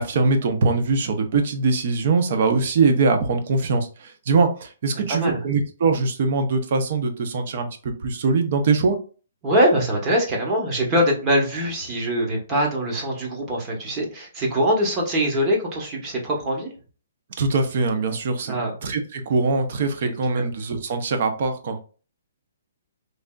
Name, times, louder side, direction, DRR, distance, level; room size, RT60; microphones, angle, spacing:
voice 1, 0.0-9.0 17.4-18.5 18.8-21.8, right 4 dB, 50° right, 6 dB, 0.7 m, -22 dB
voice 2, 4.9-5.4 9.4-16.7 18.5-18.7 20.0-20.4, equal, 20° right, 0 dB, 0.9 m, -23 dB
3.3 x 2.5 x 2.3 m, 0.37 s
hypercardioid pair, 160°, 0 cm